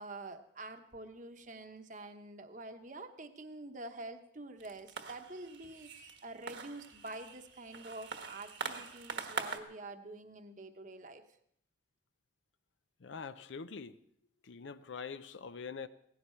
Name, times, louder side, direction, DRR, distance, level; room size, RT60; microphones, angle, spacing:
voice 1, 0.0-11.2, right 2 dB, 40° right, 1.0 m, -47 dB
sound 1, 4.6-9.6, right 5 dB, 60° right, 1.3 m, -43 dB
voice 2, 13.0-14.0 14.4-15.9, left 5 dB, 70° left, 0.5 m, -44 dB
17.5 x 15.0 x 4.4 m
head